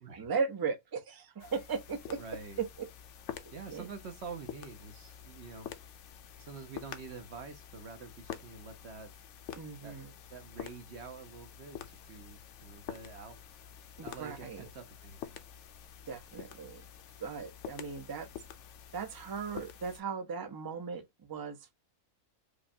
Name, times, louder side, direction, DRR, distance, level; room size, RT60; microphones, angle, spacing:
voice 1, 0.2-2.2 3.7-3.9 9.6-10.1 14.0-14.7 16.1-16.8 17.2-18.3 18.9-21.7, right 5 dB, 30° right, 0.4 m, -37 dB
sound 1, 1.4-20.0, left 9 dB, 70° left, 0.8 m, -48 dB
voice 2, 2.2-2.6 3.5-5.7 6.4-9.1 9.8-10.0 10.3-13.4 14.0-15.4, right 5 dB, 55° right, 1.0 m, -47 dB
5.1 x 2.2 x 2.7 m
omnidirectional pair, 1.4 m